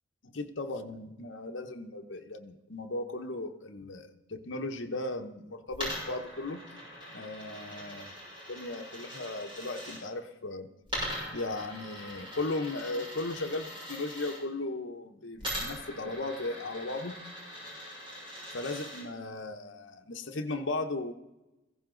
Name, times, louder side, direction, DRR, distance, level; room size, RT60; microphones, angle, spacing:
voice 1, 0.3-6.6 7.1-8.1 8.5-10.7 11.3-17.2 18.5-21.1, left 2 dB, 70° left, 4 dB, 1.0 m, -36 dB
Coin (dropping), 5.7-10.0 10.9-14.4 15.4-19.0, equal, 25° right, 6.3 m, -41 dB
15.5 x 15.5 x 3.9 m, 1.0 s
head